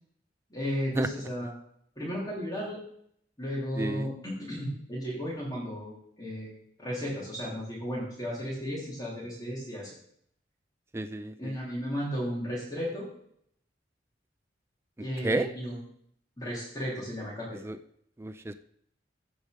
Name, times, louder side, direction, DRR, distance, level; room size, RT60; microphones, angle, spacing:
voice 1, 0.5-1.5 1.9-2.8 3.4-9.9 11.4-13.1 15.0-15.8 16.4-17.6, equal, 20° left, -6 dB, 3.2 m, -34 dB
voice 2, 3.8-4.1 10.9-11.6 15.2-15.5 17.6-17.8 18.2-18.5, right 2 dB, 15° right, 9 dB, 0.4 m, -31 dB
15.5 x 5.2 x 5.2 m, 0.69 s
head